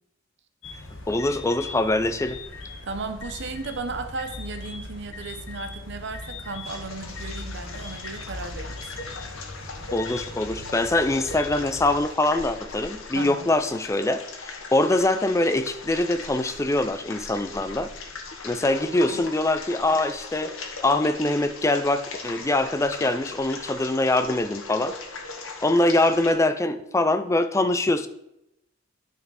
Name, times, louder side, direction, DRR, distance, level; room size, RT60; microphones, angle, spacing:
sound 1, 0.6-12.0, left 2 dB, 65° left, 1.3 m, -39 dB
voice 1, 1.1-2.4 9.9-17.9 18.4-20.5 20.8-25.0 25.6-28.1, left 2 dB, 15° left, 10 dB, 0.4 m, -23 dB
voice 2, 2.8-8.9 13.1-13.5 19.1-19.2, right 3 dB, 60° right, 8 dB, 0.8 m, -35 dB
sound 2, 6.6-26.3, left 4 dB, 85° left, 1.1 m, -39 dB
9.3 x 4.3 x 4.1 m, 0.84 s
head